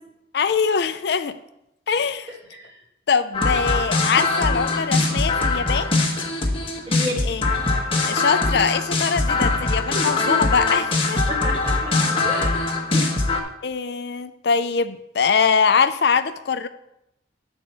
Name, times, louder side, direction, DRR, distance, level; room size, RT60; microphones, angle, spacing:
voice 1, 0.3-1.4 1.9-2.3 3.1-5.9 7.3-7.4 8.1-11.2 13.6-16.7, left 6 dB, 60° left, 10 dB, 0.4 m, -22 dB
voice 2, 2.3-2.8 6.9-7.3 9.9-10.4 11.3-13.5, left 1 dB, 30° right, -1 dB, 1.9 m, -32 dB
sound 1, 3.3-13.4, left 3 dB, 30° left, 1.2 m, -22 dB
10.0 x 4.4 x 6.8 m, 0.86 s
head